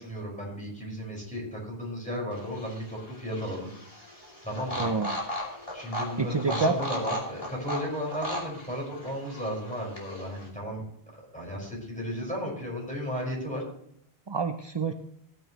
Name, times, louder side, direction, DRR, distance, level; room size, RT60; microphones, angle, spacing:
voice 1, 0.0-3.7 4.0-4.1 4.4-4.9 5.7-10.8 11.1-13.6, equal, 5° left, -3 dB, 5.3 m, -34 dB
sound 1, 2.3-10.5, left 1 dB, 30° left, 2.9 m, -37 dB
voice 2, 4.8-5.2 6.2-6.8 14.3-14.9, right 4 dB, 35° right, 6 dB, 0.5 m, -27 dB
15.5 x 9.6 x 3.1 m, 0.71 s
omnidirectional pair, 1.1 m